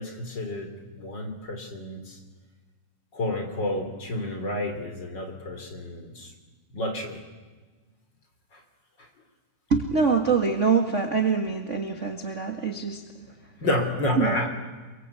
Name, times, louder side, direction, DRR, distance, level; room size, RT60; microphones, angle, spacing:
voice 1, 0.0-2.2 3.1-6.3 6.7-7.2 8.5-8.6 9.0-9.1 13.6-14.5, left 1 dB, 30° left, 5 dB, 3.6 m, -30 dB
voice 2, 9.7-13.0 14.1-14.4, right 5 dB, 40° right, 5 dB, 1.0 m, -24 dB
28.5 x 23.5 x 8.4 m, 1.3 s
omnidirectional pair, 4.3 m